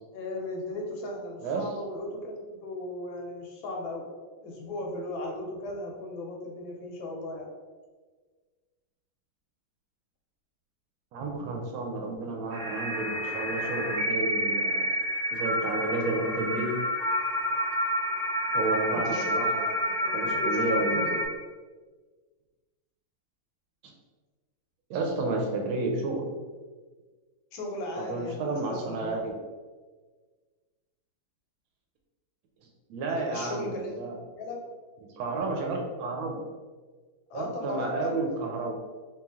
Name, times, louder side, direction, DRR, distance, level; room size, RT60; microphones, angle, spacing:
voice 1, 0.1-4.1 4.4-7.5 18.9-21.2 27.5-29.2 33.1-34.7 37.3-38.2, left 2 dB, 70° left, 0 dB, 1.3 m, -37 dB
voice 2, 11.1-14.9 15.3-16.8 18.5-19.7 20.1-21.1 24.9-26.3 28.0-29.4 32.9-34.1 35.2-36.4 37.3-38.7, right 2 dB, 75° right, 1 dB, 1.3 m, -31 dB
sound 1, 12.5-21.3, equal, 50° right, 1.2 m, -29 dB
3.2 x 3.1 x 3.4 m, 1.4 s
omnidirectional pair, 2.4 m